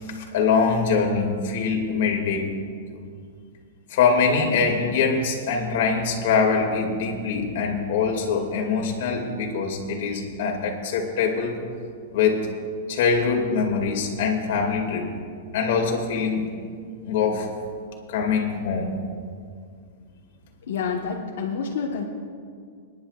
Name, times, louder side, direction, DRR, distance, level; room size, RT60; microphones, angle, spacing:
voice 1, 0.1-2.5 3.9-11.5 12.1-12.4 12.9-15.1 15.5-16.5 17.1-17.5 18.1-19.1, left 5 dB, 60° left, 1 dB, 2.2 m, -23 dB
voice 2, 20.7-22.0, left 6 dB, 80° left, -1 dB, 1.2 m, -28 dB
28.0 x 10.5 x 2.4 m, 2.2 s
supercardioid pair, 160°, 0 cm